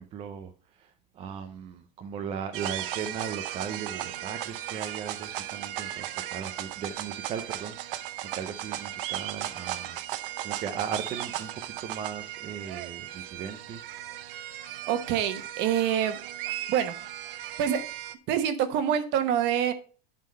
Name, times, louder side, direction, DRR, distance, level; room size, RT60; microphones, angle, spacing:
voice 1, 0.0-10.0 10.4-13.8, right 7 dB, 20° right, 7 dB, 0.4 m, -38 dB
sound 1, 2.5-18.1, right 13 dB, 70° right, 0.8 m, -36 dB
voice 2, 14.9-16.2 16.7-16.9 17.6-17.8 18.3-19.7, right 9 dB, 40° right, 10 dB, 1.1 m, -26 dB
11.0 x 3.7 x 5.3 m, 0.38 s
supercardioid pair, 165°, 29 cm